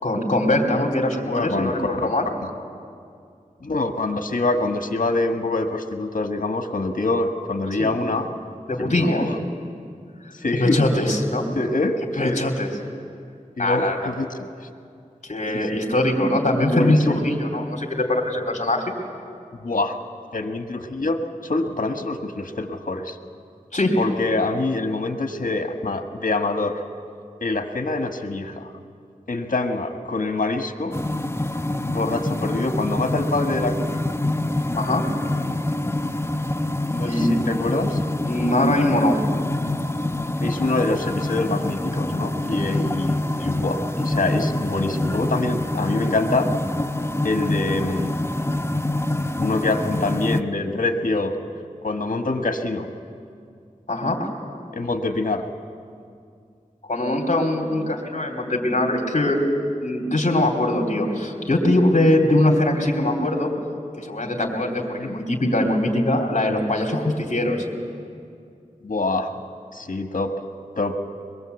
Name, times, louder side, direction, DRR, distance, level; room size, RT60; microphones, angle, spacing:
voice 1, 0.0-2.3 7.8-7.9 8.7-9.2 10.6-11.5 12.2-12.7 13.6-14.1 15.2-18.9 23.7-23.9 34.7-35.1 37.0-37.3 38.2-39.2 53.9-54.3 56.9-59.4 59.8-63.5 64.0-67.6, left 1 dB, 60° left, 0 dB, 3.1 m, -22 dB
voice 2, 1.3-2.1 3.6-8.3 8.8-9.4 10.4-10.7 11.6-12.0 12.2-12.4 13.6-14.3 15.5-15.6 15.9-16.0 16.6-17.3 19.6-20.0 20.3-23.2 24.0-26.8 27.4-28.7 29.3-31.0 31.9-34.0 36.9-38.0 40.4-46.5 47.2-48.1 49.4-51.3 51.8-52.9 54.7-55.5 65.0-65.1 68.8-69.3 69.7-70.3 70.8-71.0, left 2 dB, 80° left, 5 dB, 1.4 m, -25 dB
sound 1, 30.9-50.4, left 1 dB, 20° left, 0.8 m, -26 dB
22.5 x 21.5 x 8.1 m, 2.3 s
wide cardioid pair, 50°, 14 cm